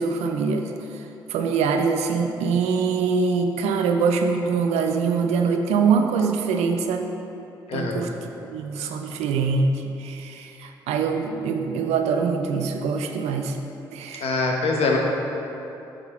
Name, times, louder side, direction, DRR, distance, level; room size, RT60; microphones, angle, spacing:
voice 1, 0.0-7.1 7.7-13.6 13.9-14.3, right 5 dB, 65° right, 5 dB, 0.5 m, -24 dB
voice 2, 7.7-8.0 14.2-15.0, left 3 dB, 55° left, 0 dB, 1.1 m, -23 dB
9.8 x 3.9 x 4.3 m, 3.0 s
hypercardioid pair, 40°, 12 cm